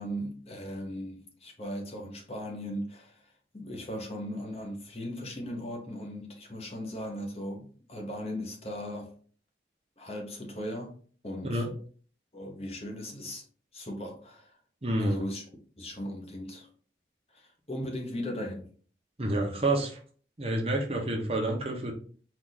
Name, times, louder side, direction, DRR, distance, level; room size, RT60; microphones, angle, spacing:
voice 1, 0.0-9.1 10.0-10.9 11.2-11.7 12.3-13.4 13.7-14.6 15.0-15.4 15.8-16.7 17.3-18.7, equal, 35° left, 1.0 m, -38 dB
voice 2, 14.8-15.2 19.2-20.0 20.4-21.9, right 1 dB, 35° right, 0.8 m, -28 dB
4.6 x 2.6 x 3.9 m
head